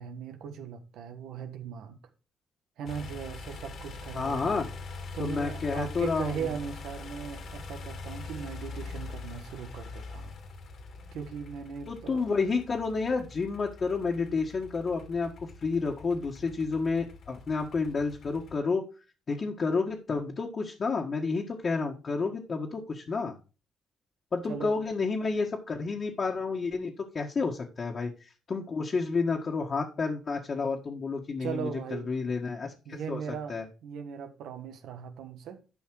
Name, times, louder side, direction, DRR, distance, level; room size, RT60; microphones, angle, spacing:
voice 1, 0.0-2.0 2.8-4.7 5.1-10.3 11.1-12.3 24.5-24.8 31.4-32.1 32.8-35.6, right 7 dB, 85° right, 1.4 m, -39 dB
sound 1, 2.9-18.6, left 3 dB, 60° left, 2.2 m, -43 dB
voice 2, 4.1-4.7 5.2-6.4 11.9-18.8 19.3-23.4 24.3-28.1 28.5-33.2 33.5-33.6, left 4 dB, 40° left, 1.7 m, -30 dB
11.5 x 5.5 x 4.8 m
cardioid pair, 90°, 0 cm